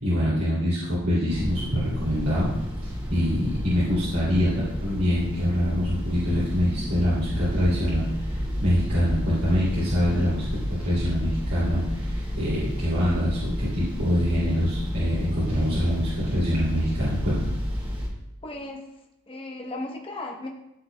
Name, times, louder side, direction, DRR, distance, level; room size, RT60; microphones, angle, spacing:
voice 1, 0.0-2.5 2.8-4.5 4.8-10.5 10.8-17.5, equal, 85° right, -10 dB, 2.7 m, -25 dB
sound 1, 1.3-18.1, equal, 25° right, 1.6 m, -31 dB
voice 2, 18.4-18.8 19.3-20.5, left 2 dB, 25° left, 1 dB, 1.0 m, -35 dB
13.5 x 4.8 x 2.2 m, 0.89 s
head